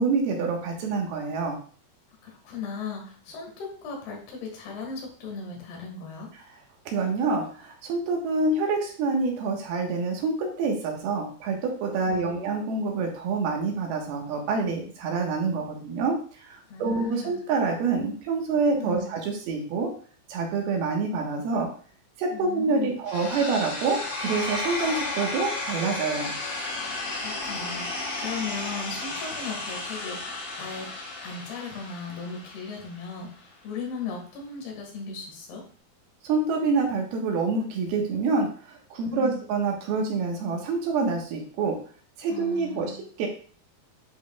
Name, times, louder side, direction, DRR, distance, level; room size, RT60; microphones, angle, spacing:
voice 1, 0.0-1.6 6.9-19.9 20.3-21.7 22.2-26.4 36.2-41.8 42.2-42.9 43.2-43.3, right 4 dB, 80° right, 1 dB, 3.2 m, -27 dB
voice 2, 2.2-6.3 12.1-12.5 16.7-17.4 18.8-19.1 22.3-23.0 26.9-30.9 31.2-33.3 33.6-35.6 39.1-39.4 42.3-43.0, left 5 dB, 85° left, 0 dB, 3.8 m, -37 dB
sound 1, 23.1-33.1, left 2 dB, 70° left, 4.3 m, -33 dB
10.0 x 5.4 x 2.3 m, 0.44 s
omnidirectional pair, 4.4 m